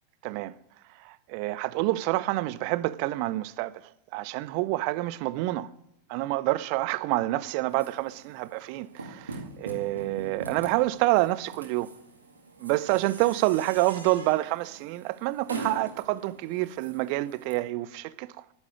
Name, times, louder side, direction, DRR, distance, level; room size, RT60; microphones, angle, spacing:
voice 1, 0.2-0.6 1.0-3.7 4.1-5.7 6.1-11.9 12.6-18.3, right 18 dB, 45° right, 0.6 m, -28 dB
sound 1, 7.7-17.5, right 2 dB, 75° right, 2.3 m, -43 dB
10.5 x 9.9 x 9.3 m
figure-of-eight pair, 90°, 0 cm